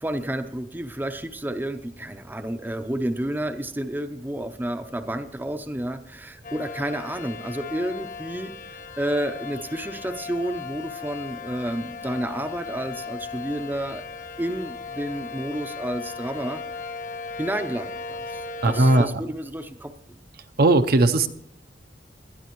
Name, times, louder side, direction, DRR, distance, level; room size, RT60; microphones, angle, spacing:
voice 1, 0.0-14.0 14.4-16.6 17.4-18.2 18.6-19.9, right 1 dB, 10° right, 7 dB, 0.6 m, -30 dB
sound 1, 6.4-19.1, left 4 dB, 45° left, 0.9 m, -37 dB
voice 2, 18.6-19.1 20.6-21.3, right 2 dB, 60° right, 7 dB, 0.7 m, -17 dB
19.5 x 12.5 x 3.1 m, 0.70 s
head